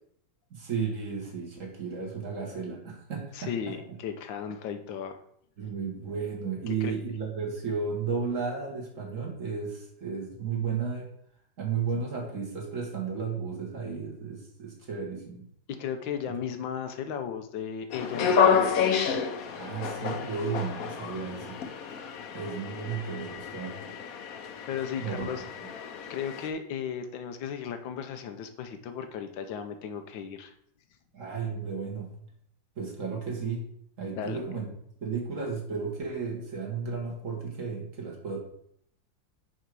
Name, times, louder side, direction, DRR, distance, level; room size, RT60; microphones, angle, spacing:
voice 1, 0.5-3.7 5.6-11.1 11.6-15.4 19.5-21.6 22.3-23.9 25.0-25.3 31.1-32.1 32.8-33.6 34.0-34.7 35.0-38.4, right 5 dB, 45° right, 1 dB, 1.8 m, -33 dB
voice 2, 3.3-5.2 5.6-5.7 6.7-6.9 15.7-18.8 24.7-25.4 26.1-30.5 34.1-34.4, left 7 dB, 90° left, 7 dB, 1.6 m, -35 dB
sound 1, 17.9-26.5, left 6 dB, 60° left, 1.1 m, -29 dB
6.5 x 5.4 x 4.7 m, 0.68 s
omnidirectional pair, 2.0 m